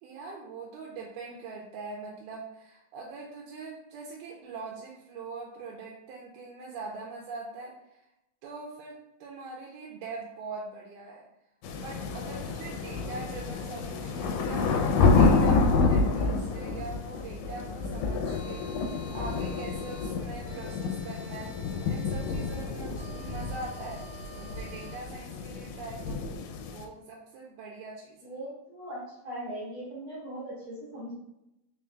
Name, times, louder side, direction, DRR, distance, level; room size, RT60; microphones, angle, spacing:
voice 1, 0.0-7.7 8.4-11.3 11.8-21.5 21.8-24.0 24.4-26.3 26.7-28.3, right 3 dB, 90° right, -2 dB, 2.1 m, -42 dB
sound 1, 11.6-26.8, left 4 dB, 80° left, 1.8 m, -28 dB
sound 2, 18.3-25.0, equal, 30° right, 1.2 m, -48 dB
voice 2, 28.2-31.1, right 1 dB, 55° right, -8 dB, 1.5 m, -39 dB
4.8 x 3.8 x 2.2 m, 0.86 s
omnidirectional pair, 3.6 m